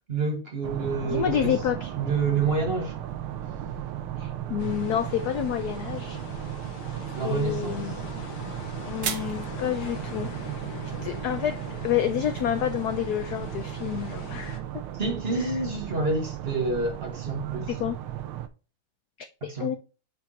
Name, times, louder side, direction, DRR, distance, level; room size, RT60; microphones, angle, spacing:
voice 1, 0.1-1.6 1.9-3.0 7.1-7.8 14.9-17.7 19.5-19.7, right 4 dB, 30° right, 1.6 m, -28 dB
sound 1, 0.6-18.5, right 12 dB, 85° right, 1.6 m, -35 dB
voice 2, 1.0-1.9 4.2-6.2 7.2-7.9 8.9-10.3 11.0-14.6 17.7-18.0 19.4-19.8, left 10 dB, 75° left, 0.9 m, -29 dB
sound 2, 4.6-14.6, left 5 dB, 55° left, 1.6 m, -42 dB
sound 3, 7.4-13.3, right 8 dB, 65° right, 1.5 m, -42 dB
7.4 x 4.7 x 2.9 m
omnidirectional pair, 2.3 m